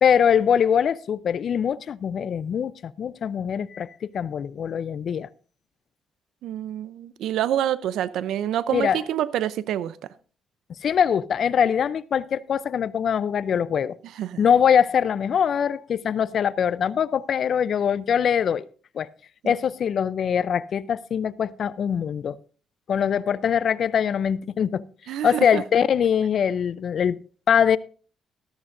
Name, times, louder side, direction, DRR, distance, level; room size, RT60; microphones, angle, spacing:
voice 1, 0.0-3.9 4.1-5.3 8.7-9.0 10.8-14.0 14.4-18.7 18.9-19.1 19.4-22.4 22.9-24.8 25.2-27.8, left 8 dB, 60° left, 0.5 m, -22 dB
voice 2, 6.4-10.0 14.2-14.4 19.4-19.5 25.1-25.6, right 11 dB, 80° right, 0.6 m, -27 dB
14.0 x 13.5 x 2.6 m
supercardioid pair, 70°, 0 cm